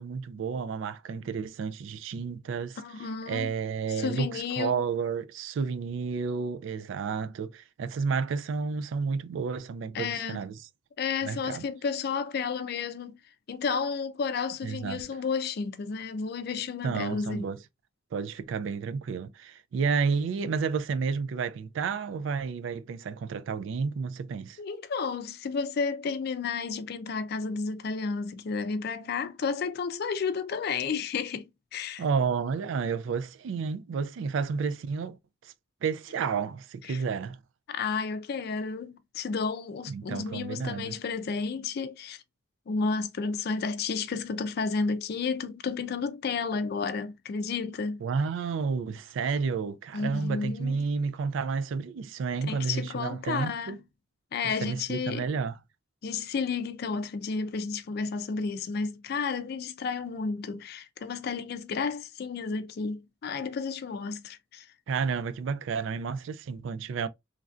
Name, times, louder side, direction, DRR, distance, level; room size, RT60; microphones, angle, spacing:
voice 1, 0.0-2.8 3.3-10.5 11.2-11.6 14.6-15.0 16.8-17.6 18.1-24.6 32.0-35.2 35.4-35.5 35.8-37.4 39.9-41.0 48.0-53.8 54.6-55.6 64.9-67.1, right 5 dB, 70° right, 0.3 m, -31 dB
voice 2, 2.8-3.5 3.9-4.8 9.9-10.4 11.0-13.2 13.5-17.5 24.6-32.0 36.8-37.0 37.7-42.2 42.7-48.0 49.9-50.8 52.5-53.8 54.3-55.3 56.0-64.7, left 5 dB, 55° left, 0.4 m, -32 dB
3.2 x 2.5 x 2.3 m
head